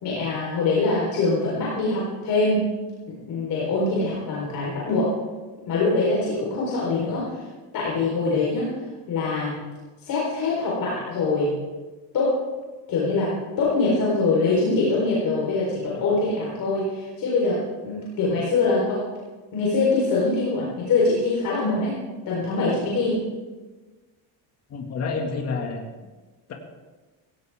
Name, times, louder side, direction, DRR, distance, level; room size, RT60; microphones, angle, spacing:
voice 1, 0.0-2.7 3.1-5.1 5.7-7.2 7.7-8.7 9.1-9.7 10.0-11.6 12.1-12.4 12.9-13.3 13.6-19.0 19.5-22.0 22.3-23.2, left 3 dB, 50° left, -5 dB, 4.2 m, -23 dB
voice 2, 24.7-25.8 26.5-26.6, left 4 dB, 35° left, 1 dB, 2.1 m, -28 dB
17.0 x 16.5 x 3.6 m, 1.3 s
cardioid pair, 180°, 44 cm